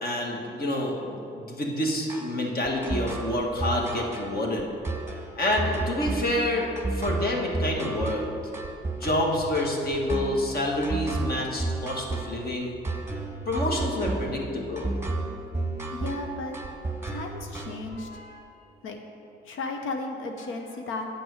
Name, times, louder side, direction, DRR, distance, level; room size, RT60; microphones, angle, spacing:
voice 1, 0.0-4.7 5.4-8.2 8.9-12.8 13.5-14.9 18.0-18.4, left 1 dB, 50° left, 0 dB, 1.7 m, -28 dB
sound 1, 2.1-18.0, right 3 dB, 10° right, 1.1 m, -32 dB
voice 2, 15.9-16.6 17.1-18.2 18.8-19.0 19.4-21.1, left 3 dB, 85° left, 3 dB, 0.9 m, -34 dB
8.6 x 6.1 x 6.4 m, 2.7 s
cardioid pair, 90°, 20 cm